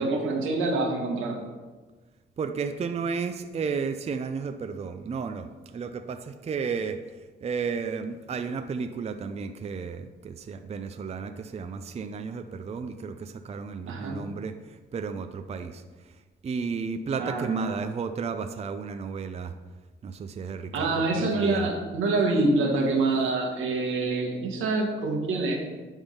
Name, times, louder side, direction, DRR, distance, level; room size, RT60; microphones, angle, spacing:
voice 1, 0.0-1.4 13.9-14.3 17.2-17.7 20.7-25.6, right 3 dB, 85° right, 2 dB, 1.4 m, -26 dB
voice 2, 2.4-7.0 7.4-14.5 14.9-15.8 16.4-19.5 20.0-21.7, right 5 dB, 30° right, 8 dB, 0.5 m, -33 dB
10.5 x 3.6 x 5.5 m, 1.3 s
cardioid pair, 90°, 20 cm